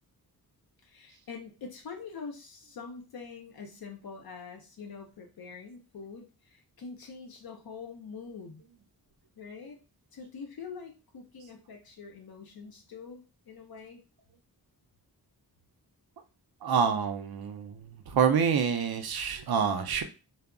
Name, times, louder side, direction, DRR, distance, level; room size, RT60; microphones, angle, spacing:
voice 1, 0.8-8.6 9.4-9.8 10.1-14.0, left 5 dB, 65° left, 2 dB, 0.6 m, -45 dB
voice 2, 16.6-20.0, right 6 dB, 70° right, 7 dB, 0.5 m, -27 dB
2.2 x 2.0 x 3.6 m, 0.32 s
wide cardioid pair, 105°, 39 cm